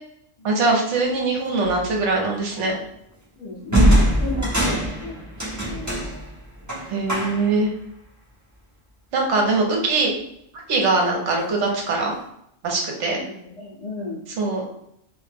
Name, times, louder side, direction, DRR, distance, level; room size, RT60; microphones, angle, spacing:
voice 1, 0.4-2.7 6.9-7.7 9.1-10.1 10.7-12.1 12.6-13.2 14.4-14.7, right 3 dB, 70° right, 0 dB, 1.0 m, -22 dB
sound 1, 1.6-1.9 3.7-7.6, equal, 25° right, 0.4 m, -22 dB
voice 2, 3.4-6.0 13.2-14.2, left 2 dB, 90° left, -4 dB, 0.3 m, -35 dB
2.4 x 2.1 x 3.3 m, 0.76 s
omnidirectional pair, 1.3 m